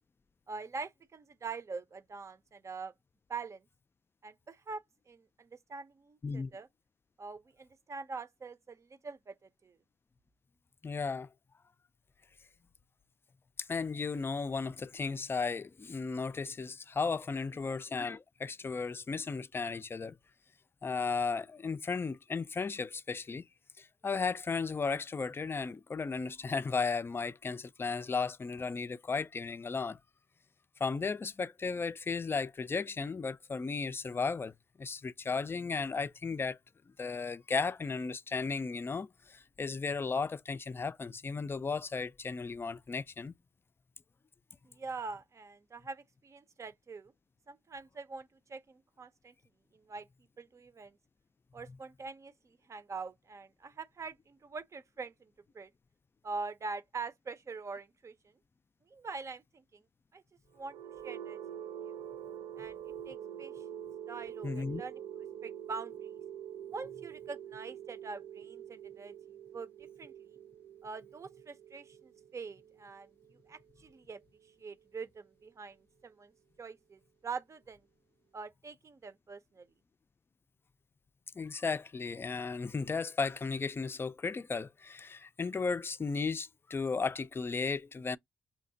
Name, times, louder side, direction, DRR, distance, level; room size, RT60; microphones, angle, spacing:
voice 1, 0.5-2.9 3.3-3.6 4.2-6.7 7.2-9.8 44.6-47.1 47.5-49.3 49.7-50.1 50.4-51.0 51.5-55.3 55.5-55.7 56.2-58.2 58.9-59.6 60.1-60.2 60.5-60.8 61.0-61.4 61.8-62.0 62.6-62.8 63.0-63.6 64.1-65.0 65.4-66.1 66.7-69.1 69.5-69.7 70.0-70.1 70.8-73.1 73.5-74.2 74.6-76.3 76.6-77.8 78.3-79.7, right 4 dB, 40° right, 0.7 m, -44 dB
voice 2, 10.8-11.3 13.6-20.2 20.8-23.4 23.8-30.0 30.8-36.6 37.0-43.3 51.7-51.8 64.4-64.8 81.4-88.2, left 4 dB, 30° left, 0.4 m, -35 dB
sound 1, 60.5-74.4, right 10 dB, 85° right, 0.4 m, -46 dB
5.6 x 2.0 x 2.7 m
supercardioid pair, 50°, 7 cm